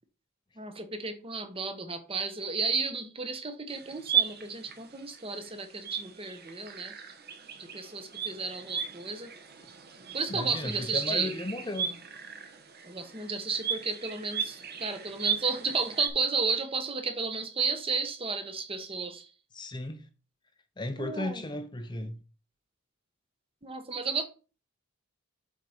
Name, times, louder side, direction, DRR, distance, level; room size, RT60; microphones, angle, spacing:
voice 1, 0.6-6.9 7.6-9.3 10.1-11.3 12.8-19.3 21.0-21.4 23.6-24.2, right 4 dB, 25° right, 1.0 m, -33 dB
sound 1, 3.7-16.1, right 8 dB, 45° right, 1.2 m, -36 dB
voice 2, 10.3-12.0 19.5-20.0 20.8-22.2, left 2 dB, 20° left, 0.6 m, -35 dB
7.5 x 4.1 x 5.0 m
head